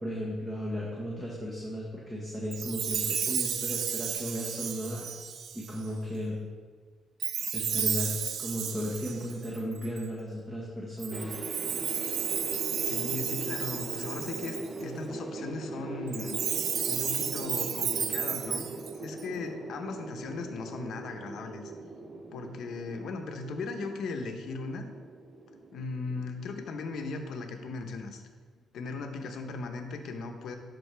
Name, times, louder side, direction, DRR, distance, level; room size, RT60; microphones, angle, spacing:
voice 1, 0.0-5.1 5.5-6.4 7.5-11.3, equal, 15° right, -5 dB, 1.3 m, -35 dB
Chime, 2.5-5.9 7.2-10.1 11.0-14.8 16.1-19.2, right 8 dB, 65° right, 0.4 m, -33 dB
sound 1, 11.1-27.2, right 2 dB, 35° right, 0.8 m, -41 dB
voice 2, 12.8-16.4 16.9-18.6 19.0-21.6 22.3-24.9 25.7-28.2 28.7-30.6, left 3 dB, 70° left, 5 dB, 0.8 m, -37 dB
11.0 x 4.0 x 3.4 m, 1.5 s
cardioid pair, 90°, 0 cm